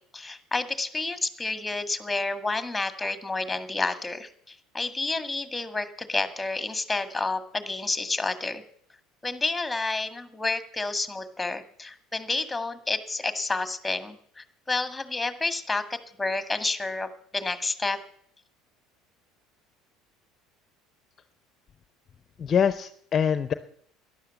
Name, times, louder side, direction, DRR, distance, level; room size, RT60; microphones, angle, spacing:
voice 1, 0.1-8.6 9.2-18.0, left 3 dB, 10° left, 11 dB, 1.7 m, -30 dB
voice 2, 22.4-23.5, left 7 dB, 40° left, 13 dB, 0.7 m, -24 dB
12.5 x 11.0 x 7.3 m, 0.64 s
hypercardioid pair, 70°, 0 cm